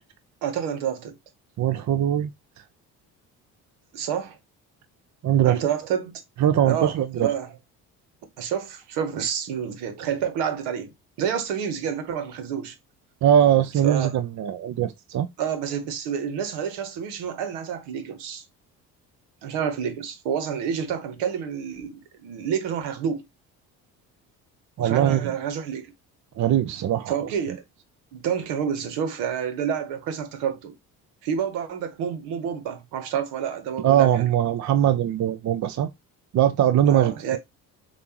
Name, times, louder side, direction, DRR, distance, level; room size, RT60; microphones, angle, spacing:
voice 1, 0.4-1.2 3.9-4.4 5.4-6.1 6.6-7.5 8.4-10.9 11.2-12.7 13.8-14.1 15.4-18.4 19.4-23.2 24.8-25.9 27.1-27.6 28.1-30.7 31.2-34.3 36.9-37.4, right 8 dB, 75° right, 1.2 m, -29 dB
voice 2, 1.6-2.3 5.2-5.6 6.4-7.3 13.2-15.3 24.8-25.3 26.4-27.3 33.8-35.9 36.3-37.4, right 10 dB, 45° right, 0.6 m, -21 dB
6.7 x 2.6 x 2.9 m
hypercardioid pair, 60°, 42 cm